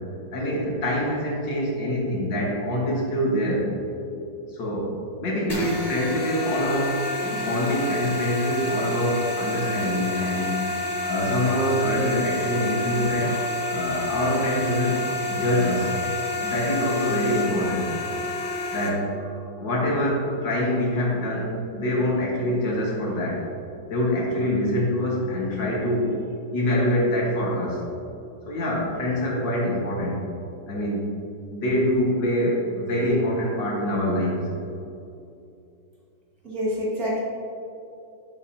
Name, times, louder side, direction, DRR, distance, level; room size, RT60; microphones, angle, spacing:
voice 1, 0.3-3.7 4.5-4.9 5.2-7.0 7.3-10.6 11.1-13.4 13.7-15.0 15.3-15.9 16.4-17.9 18.7-23.4 23.9-26.2 26.5-27.8 28.5-30.2 30.7-31.1 31.5-34.5, left 1 dB, 80° left, -3 dB, 2.3 m, -25 dB
sound 1, 5.5-18.9, left 2 dB, 15° left, 0.9 m, -29 dB
voice 2, 36.4-37.2, equal, 50° right, -5 dB, 2.3 m, -26 dB
10.0 x 7.6 x 2.9 m, 2.7 s
omnidirectional pair, 2.0 m